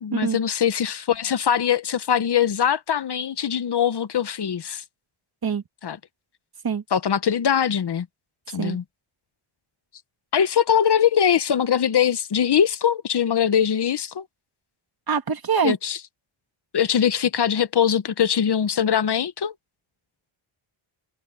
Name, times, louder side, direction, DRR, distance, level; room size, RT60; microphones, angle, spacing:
voice 1, 0.0-4.8 5.8-6.0 6.9-8.1 8.5-8.8 10.3-14.2 15.6-16.0 16.7-19.5, left 8 dB, 50° left, 1.0 m, -22 dB
voice 2, 15.1-15.7, right 6 dB, 45° right, 2.3 m, -24 dB
wide cardioid pair, 145°, 50 cm